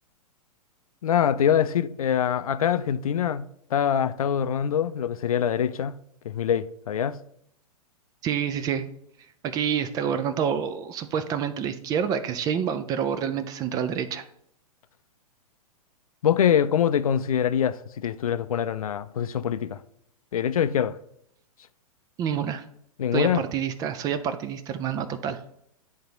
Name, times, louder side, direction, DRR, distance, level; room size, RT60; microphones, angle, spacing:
voice 1, 1.0-5.9 6.2-7.2 16.2-19.8 20.3-21.0 23.0-23.4, left 9 dB, 65° left, 0.5 m, -24 dB
voice 2, 8.2-8.8 9.4-14.2 22.2-22.6 23.1-25.4, right 8 dB, 20° right, 0.4 m, -28 dB
10.0 x 3.5 x 3.9 m
figure-of-eight pair, 110°, 20 cm